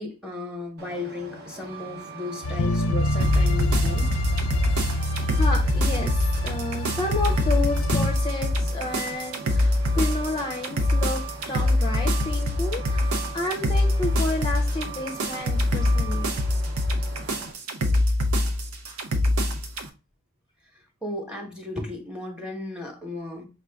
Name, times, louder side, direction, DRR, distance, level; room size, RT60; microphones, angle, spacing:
voice 1, 0.0-4.3 21.0-23.4, left 2 dB, 5° right, 1.0 m, -35 dB
Truck, 0.8-17.5, right 6 dB, 50° right, 0.6 m, -41 dB
sound 1, 2.4-8.1, left 1 dB, 85° left, 0.5 m, -27 dB
sound 2, 3.2-19.9, left 1 dB, 90° right, 0.7 m, -24 dB
voice 2, 4.9-11.2 11.5-16.4, left 2 dB, 20° left, 0.5 m, -31 dB
5.3 x 2.5 x 3.3 m
head